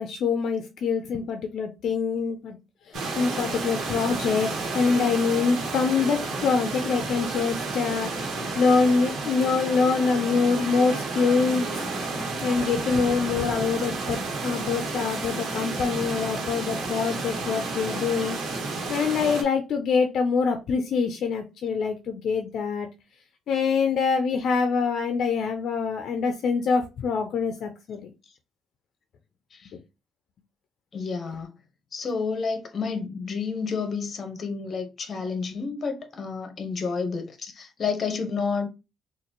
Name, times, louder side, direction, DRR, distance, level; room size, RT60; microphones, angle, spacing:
voice 1, 0.0-2.6 2.9-11.8 12.4-18.4 18.9-22.9 23.5-28.1, left 5 dB, 70° left, 0.6 m, -25 dB
sound 1, 2.9-19.4, right 3 dB, 70° right, 1.2 m, -31 dB
voice 2, 30.9-31.5 31.9-38.7, left 5 dB, 45° left, 0.9 m, -30 dB
3.9 x 2.5 x 2.9 m
cardioid pair, 90°, 0 cm